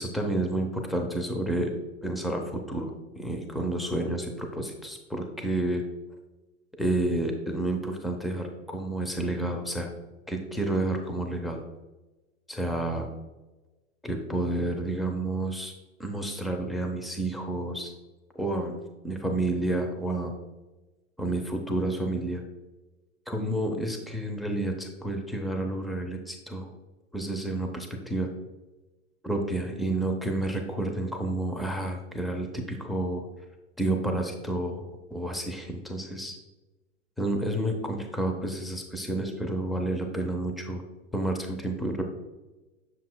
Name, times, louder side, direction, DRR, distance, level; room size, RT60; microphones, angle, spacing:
voice 1, 0.0-1.7 2.0-5.8 6.8-9.9 10.3-11.6 12.5-13.1 14.0-15.7 16.0-17.9 18.3-18.8 19.0-20.4 21.2-22.4 23.3-26.7 27.1-28.3 29.2-33.3 33.8-34.8 35.1-36.4 37.2-40.8 41.1-42.0, right 1 dB, ahead, 3 dB, 0.7 m, -30 dB
7.3 x 7.3 x 2.2 m, 1.1 s
hypercardioid pair, 105°, 38 cm